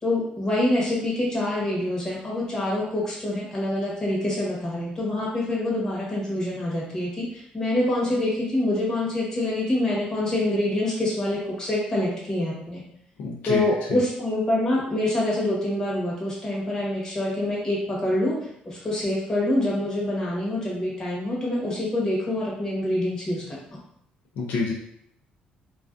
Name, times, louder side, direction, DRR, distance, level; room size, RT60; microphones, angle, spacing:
voice 1, 0.0-12.8 13.4-18.4 18.6-23.6, left 1 dB, 20° left, -5 dB, 0.9 m, -26 dB
voice 2, 13.2-13.6 13.9-14.0 24.4-24.7, left 4 dB, 80° left, -2 dB, 0.5 m, -27 dB
2.3 x 2.3 x 2.4 m, 0.70 s
cardioid pair, 125°, 3 cm